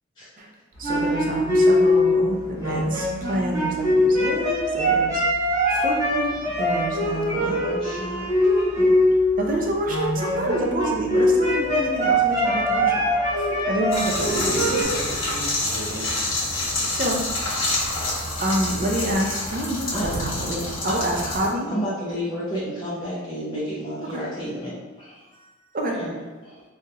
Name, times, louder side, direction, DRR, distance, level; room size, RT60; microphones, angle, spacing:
sound 1, 0.8-9.5 9.8-14.8, left 1 dB, 20° right, 1.0 m, -22 dB
voice 1, 0.8-5.2 5.7-7.5 8.7-8.9 9.4-12.9 13.3-14.7 16.9-17.2 17.9-18.0 18.4-21.7 25.7-26.0, right 1 dB, 45° right, 1 dB, 0.5 m, -28 dB
voice 2, 7.4-8.8 19.9-20.1 20.9-21.0 21.7-25.2 25.9-26.6, equal, 25° left, -9 dB, 0.6 m, -31 dB
sound 2, 13.9-21.5, left 2 dB, 90° left, 1.2 m, -27 dB
voice 3, 14.2-16.1 21.4-21.5, equal, 50° left, -4 dB, 0.8 m, -35 dB
3.3 x 2.3 x 2.8 m, 1.3 s
head